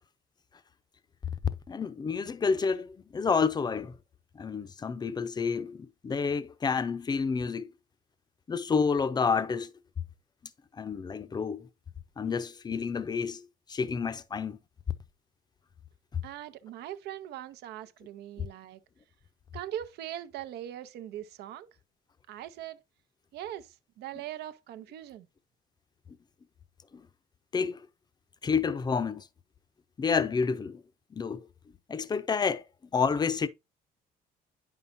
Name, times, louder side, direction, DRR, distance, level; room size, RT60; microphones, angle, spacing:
voice 1, 1.7-3.9 4.3-7.7 8.5-9.7 10.7-11.7 12.2-14.6 16.1-16.2 18.4-18.5 26.9-27.0 27.5-27.8 28.4-29.3 30.0-30.8 31.1-31.5 31.9-33.5, left 5 dB, 25° left, 0.6 m, -29 dB
voice 2, 16.2-18.8 19.5-21.7 22.3-22.8 23.3-25.3, right 12 dB, 75° right, 0.7 m, -41 dB
8.8 x 5.5 x 2.6 m
cardioid pair, 110°, 17 cm